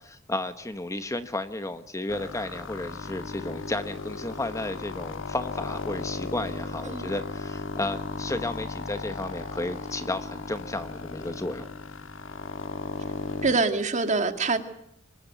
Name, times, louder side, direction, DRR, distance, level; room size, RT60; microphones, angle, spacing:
voice 1, 0.0-11.7, left 2 dB, 15° left, 10 dB, 1.1 m, -33 dB
sound 1, 2.1-13.5, left 3 dB, 70° left, 1.8 m, -36 dB
voice 2, 13.4-14.6, right 3 dB, 35° right, 7 dB, 2.3 m, -25 dB
25.0 x 20.0 x 9.4 m, 0.77 s
head